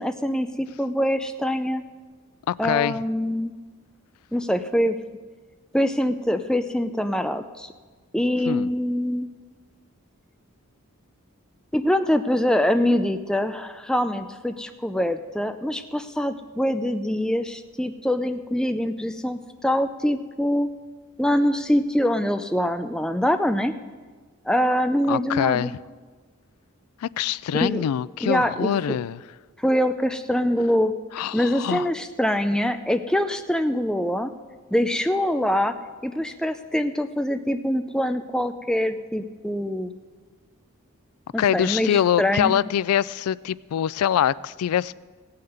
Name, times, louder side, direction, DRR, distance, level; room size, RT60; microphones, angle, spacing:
voice 1, 0.0-1.8 2.6-3.6 4.3-5.0 5.7-7.7 8.1-9.3 11.7-20.7 21.2-23.7 24.5-25.8 27.5-27.8 28.2-29.0 29.6-30.9 31.3-34.3 34.7-35.7 36.0-40.0 41.3-42.6, equal, 5° left, 8 dB, 0.4 m, -24 dB
voice 2, 2.5-3.0 8.5-8.7 25.1-25.8 27.0-29.2 31.1-31.9 41.4-45.0, left 9 dB, 90° left, 21 dB, 0.3 m, -24 dB
17.0 x 5.7 x 7.8 m, 1.4 s
head